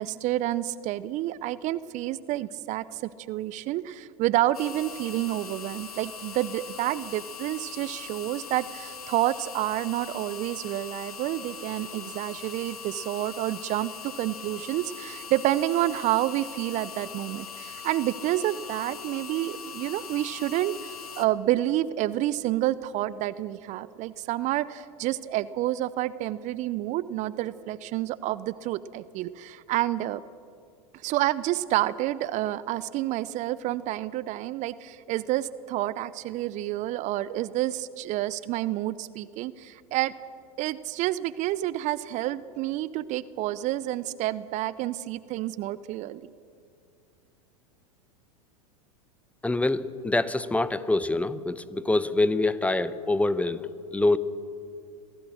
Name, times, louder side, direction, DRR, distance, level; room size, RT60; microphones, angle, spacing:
voice 1, 0.0-30.2 31.0-40.1 40.6-46.2, right 15 dB, 40° right, 17 dB, 0.6 m, -29 dB
sound 1, 4.5-21.3, left 7 dB, 80° left, 1.6 m, -41 dB
voice 2, 49.4-54.2, left 2 dB, 5° left, 15 dB, 0.8 m, -25 dB
26.5 x 16.5 x 6.4 m, 2.4 s
hypercardioid pair, 90°, 19 cm